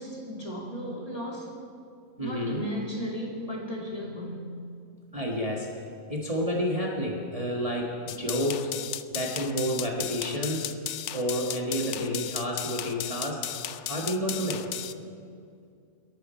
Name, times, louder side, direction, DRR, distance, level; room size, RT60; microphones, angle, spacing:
voice 1, 0.0-1.5 2.2-4.5, equal, 25° left, -3 dB, 2.6 m, -35 dB
voice 2, 2.2-2.7 5.1-5.8 6.1-8.7 9.1-10.8 11.1-13.5 13.9-14.7, equal, 25° right, -2 dB, 1.6 m, -30 dB
sound 1, 8.1-14.9, left 11 dB, 65° left, 0.8 m, -35 dB
29.0 x 11.0 x 4.4 m, 2.3 s
omnidirectional pair, 1.5 m